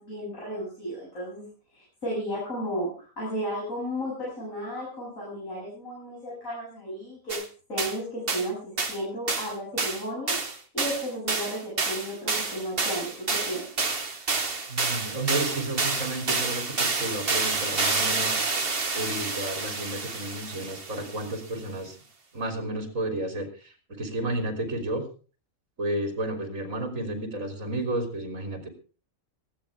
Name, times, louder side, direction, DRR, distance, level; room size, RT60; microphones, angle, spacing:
voice 1, 0.0-1.4 1.7-7.4 7.7-10.4 10.7-13.7, equal, 75° left, -6 dB, 8.4 m, -33 dB
sound 1, 7.3-7.4 7.8-8.0 8.3-8.5 8.8-9.0 9.3-9.5 9.8-21.3, right 4 dB, 45° right, 1.9 m, -29 dB
voice 2, 14.7-18.4 18.9-22.0 22.3-25.1 25.8-28.7, right 1 dB, 65° right, 5 dB, 3.8 m, -32 dB
19.0 x 15.0 x 3.5 m, 0.35 s
omnidirectional pair, 1.4 m